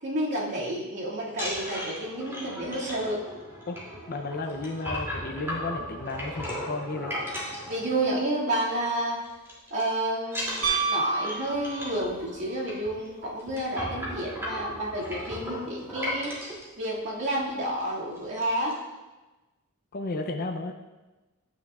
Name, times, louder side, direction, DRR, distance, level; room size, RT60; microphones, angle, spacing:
voice 1, 0.0-3.2 7.7-9.2 9.7-18.8, right 1 dB, 55° right, -5 dB, 2.2 m, -30 dB
sound 1, 1.3-8.4 8.7-9.0 9.2-9.8 10.3-16.6 17.3-17.4 17.7-17.9 18.2-18.7, equal, 10° right, 2.7 m, -36 dB
voice 2, 4.1-7.1 19.9-20.7, left 2 dB, 45° left, 4 dB, 0.6 m, -33 dB
Piano, 10.6-12.2 14.6-14.7, right 4 dB, 75° right, 1.2 m, -28 dB
11.5 x 9.2 x 2.4 m, 1.1 s
head